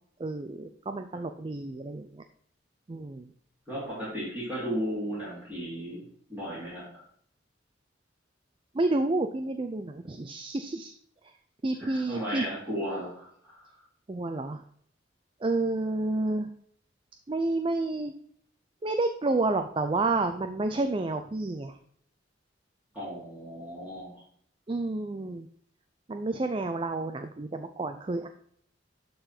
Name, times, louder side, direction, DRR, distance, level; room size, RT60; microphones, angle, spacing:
voice 1, 0.2-2.2 2.9-3.3 8.7-10.9 11.6-12.4 14.1-14.6 15.4-16.5 17.3-18.1 18.8-21.8 24.7-25.5 26.1-28.3, right 2 dB, 30° right, 7 dB, 0.4 m, -30 dB
voice 2, 3.7-7.0 11.8-13.8 22.9-24.2, equal, 10° right, -11 dB, 3.3 m, -35 dB
11.5 x 4.0 x 4.4 m, 0.63 s
head